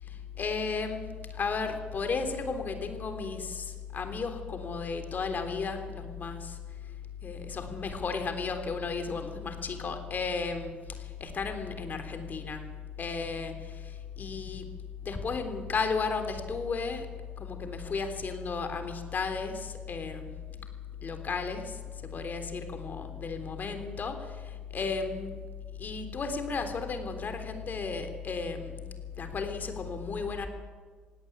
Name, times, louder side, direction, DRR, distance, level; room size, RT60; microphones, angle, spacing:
voice 1, 0.1-1.1 1.3-6.6 7.2-12.6 13.0-14.7 15.0-17.1 17.4-20.3 21.0-21.8 22.1-25.4 25.8-28.9 29.2-30.5, left 4 dB, 45° left, 7 dB, 3.6 m, -34 dB
17.5 x 17.0 x 9.8 m, 1.5 s
supercardioid pair, 60°, 4 cm